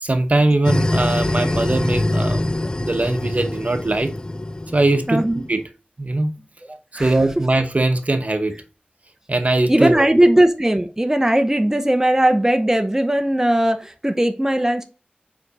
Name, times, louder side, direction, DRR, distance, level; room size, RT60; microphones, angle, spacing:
voice 1, 0.0-2.5 2.8-4.1 4.7-5.2 5.5-5.6 6.0-6.3 6.9-8.5 9.3-10.0, right 2 dB, 50° right, 0.9 m, -20 dB
sound 1, 0.6-5.5, left 1 dB, 25° left, 0.3 m, -24 dB
voice 2, 5.1-5.4 6.9-7.1 9.7-14.8, right 1 dB, 15° right, 0.8 m, -18 dB
5.1 x 4.7 x 4.0 m
wide cardioid pair, 60°, 3 cm